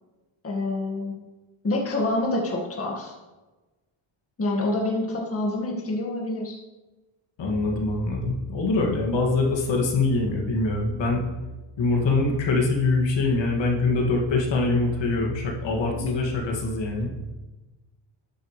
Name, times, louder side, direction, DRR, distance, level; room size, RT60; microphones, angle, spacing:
voice 1, 0.4-1.1 1.6-3.1 4.4-6.6 15.9-16.2, left 2 dB, 30° left, -1 dB, 1.9 m, -27 dB
voice 2, 7.4-11.2 11.8-17.1, left 3 dB, 65° left, -1 dB, 2.3 m, -24 dB
12.0 x 9.0 x 3.3 m, 1.2 s
cardioid pair, 130°, 47 cm